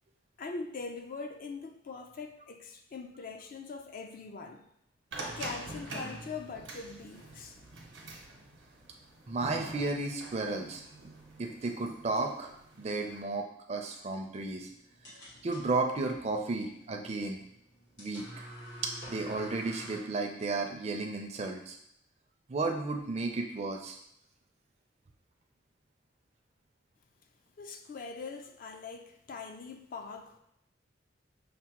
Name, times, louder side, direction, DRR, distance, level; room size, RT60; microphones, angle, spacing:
voice 1, 0.4-4.7 5.4-7.6 27.6-30.4, left 4 dB, 45° left, 0.3 m, -42 dB
sound 1, 5.1-13.2, right 2 dB, 80° right, 0.8 m, -45 dB
voice 2, 9.3-10.8 11.4-12.5 12.8-14.7 15.4-17.4 18.0-18.2 19.1-21.8 22.5-24.0, right 3 dB, 35° right, 0.4 m, -33 dB
sound 2, 14.3-20.0, equal, 80° left, 1.4 m, -49 dB
5.7 x 2.1 x 2.9 m
head